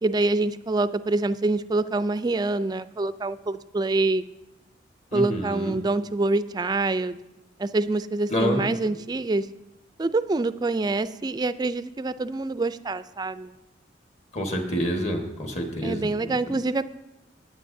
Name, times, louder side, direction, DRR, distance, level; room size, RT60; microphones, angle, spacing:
voice 1, 0.0-4.2 5.1-7.2 7.6-9.5 10.0-13.5 15.8-16.8, right 2 dB, 20° right, 14 dB, 0.3 m, -26 dB
voice 2, 5.1-5.7 8.3-8.7 14.3-16.5, equal, 40° left, 3 dB, 1.4 m, -28 dB
18.0 x 9.1 x 2.7 m, 0.93 s
head